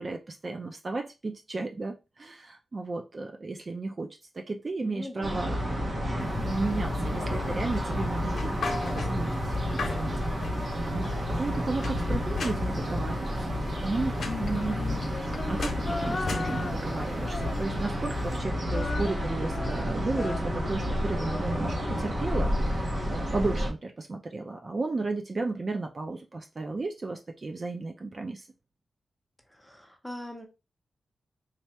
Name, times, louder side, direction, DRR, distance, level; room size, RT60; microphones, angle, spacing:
voice 1, 0.0-14.8 15.4-28.5, right 3 dB, 40° right, 0.5 m, -34 dB
voice 2, 4.8-5.4 29.5-30.5, left 1 dB, ahead, 0.8 m, -41 dB
sound 1, 5.2-23.7, equal, 60° right, 1.1 m, -30 dB
sound 2, 6.2-18.4, left 4 dB, 70° left, 0.8 m, -38 dB
Female singing, 14.1-18.0 18.3-22.6, left 3 dB, 40° left, 0.4 m, -38 dB
3.4 x 2.4 x 4.2 m
wide cardioid pair, 115°, 0 cm